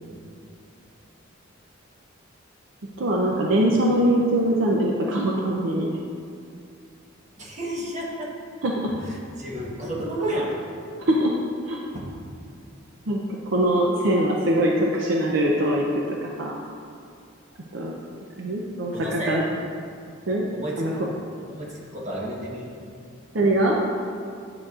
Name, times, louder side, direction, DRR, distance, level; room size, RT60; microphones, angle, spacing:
voice 1, 3.0-6.0 8.6-8.7 11.0-11.3 11.6-11.8 13.1-13.2 13.5-16.6 17.7-17.9 18.4-18.9 19.3-19.4 20.3-20.5 20.8-20.9 23.3-23.8, right 1 dB, 65° right, -1 dB, 0.6 m, -22 dB
voice 2, 7.4-8.3 8.8-10.6 11.9-12.1 18.9-19.4 20.5-21.1 21.5-22.7, right 1 dB, 35° right, -3 dB, 1.2 m, -31 dB
9.9 x 6.2 x 2.4 m, 2.4 s
head